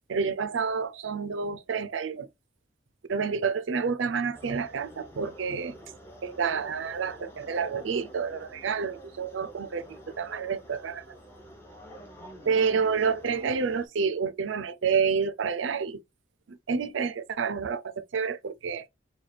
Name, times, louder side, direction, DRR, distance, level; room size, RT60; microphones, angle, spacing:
voice 1, 0.1-2.3 3.1-5.7 6.2-9.9 10.2-11.0 12.5-16.0 16.5-18.8, right 5 dB, 85° right, 0.5 m, -29 dB
sound 1, 4.3-13.9, equal, 15° left, 0.7 m, -48 dB
3.3 x 2.2 x 3.9 m
head